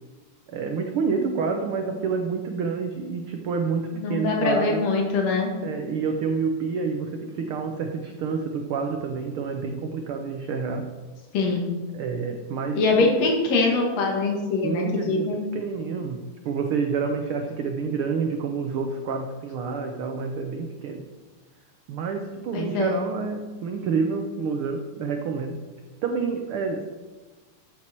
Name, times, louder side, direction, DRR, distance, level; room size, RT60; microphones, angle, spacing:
voice 1, 0.5-4.9 5.6-10.9 11.9-13.1 14.6-15.3 15.5-21.1 21.9-25.6 26.0-26.8, right 5 dB, 85° right, 4 dB, 1.2 m, -28 dB
voice 2, 4.0-5.5 11.3-11.7 12.7-15.4 22.5-23.0, left 3 dB, 60° left, 0 dB, 2.9 m, -23 dB
13.5 x 7.7 x 4.4 m, 1.3 s
omnidirectional pair, 3.5 m